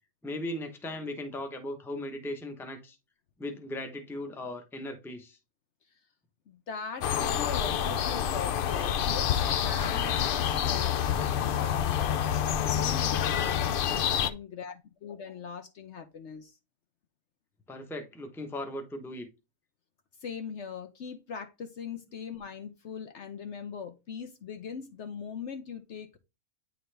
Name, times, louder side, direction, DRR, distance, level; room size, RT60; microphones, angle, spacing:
voice 1, 0.2-3.0 3.4-5.4 17.7-19.3, left 1 dB, ahead, 0.7 m, -38 dB
voice 2, 6.5-16.6 20.2-26.2, left 6 dB, 60° left, 0.9 m, -41 dB
sound 1, 7.0-14.3, left 9 dB, 80° left, 0.5 m, -28 dB
9.2 x 3.8 x 3.3 m
omnidirectional pair, 1.5 m